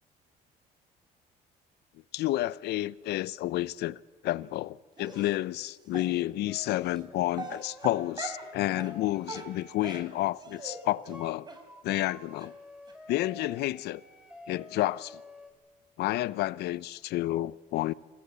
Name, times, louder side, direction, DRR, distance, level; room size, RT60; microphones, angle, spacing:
voice 1, 2.1-4.0 4.2-11.5 11.8-12.5 13.1-14.0 14.5-15.2 16.0-17.9, left 16 dB, 80° left, 0.7 m, -30 dB
Dog, 5.0-5.3 5.9-6.1 6.8-7.0 7.3-8.5 8.8-8.9 9.2-10.8 11.0-11.2 11.5-11.6 11.9-12.0 12.4-12.5 12.9-13.0 13.2-13.3, right 3 dB, 25° right, 4.6 m, -41 dB
sound 1, 6.5-10.0 10.6-10.9 11.1-11.3 11.6-15.5, left 2 dB, 5° right, 5.5 m, -49 dB
28.0 x 17.0 x 8.4 m
cardioid pair, 110°, 17 cm